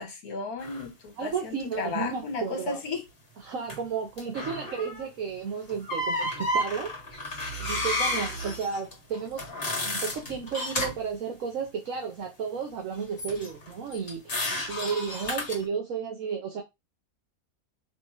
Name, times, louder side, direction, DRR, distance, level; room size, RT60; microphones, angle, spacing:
voice 1, 0.0-3.0, left 4 dB, 75° left, 1.9 m, -34 dB
sound 1, 0.6-0.9 3.7-3.8 4.2-5.1 5.7-11.1 13.2-15.6, left 1 dB, 40° left, 1.6 m, -32 dB
voice 2, 1.2-2.8 3.4-6.9 7.6-9.4 9.8-14.2 14.7-16.6, right 6 dB, 65° right, 1.2 m, -33 dB
3.4 x 3.0 x 4.7 m
omnidirectional pair, 1.6 m